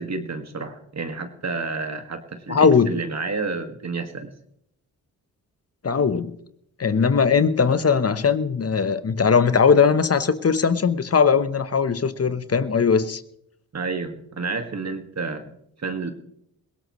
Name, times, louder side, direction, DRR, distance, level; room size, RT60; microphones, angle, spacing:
voice 1, 0.0-4.3 13.7-15.5 15.8-16.1, right 4 dB, 45° right, 7 dB, 2.0 m, -30 dB
voice 2, 2.5-3.0 5.8-6.4 6.8-13.2, left 6 dB, 40° left, 13 dB, 1.1 m, -19 dB
19.5 x 17.0 x 3.2 m, 0.73 s
supercardioid pair, 50°, 38 cm